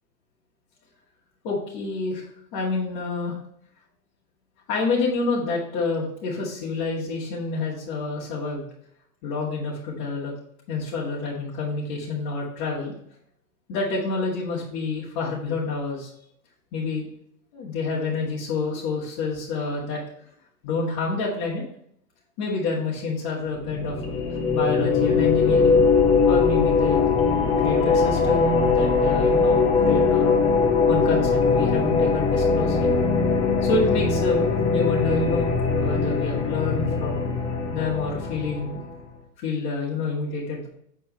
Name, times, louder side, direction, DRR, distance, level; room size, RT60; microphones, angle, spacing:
voice 1, 1.4-3.4 4.7-8.7 9.2-10.3 10.7-12.9 13.7-16.1 16.7-17.1 17.5-20.0 20.6-21.6 22.4-24.0 24.5-25.8 26.3-27.1 27.6-30.5 30.9-32.9 33.6-37.2 37.7-38.8 39.4-40.7, left 3 dB, 35° left, -7 dB, 2.3 m, -28 dB
sound 1, 23.6-39.0, left 4 dB, 15° left, 0.6 m, -21 dB
8.2 x 4.5 x 4.0 m, 0.68 s
hypercardioid pair, 140°, 49 cm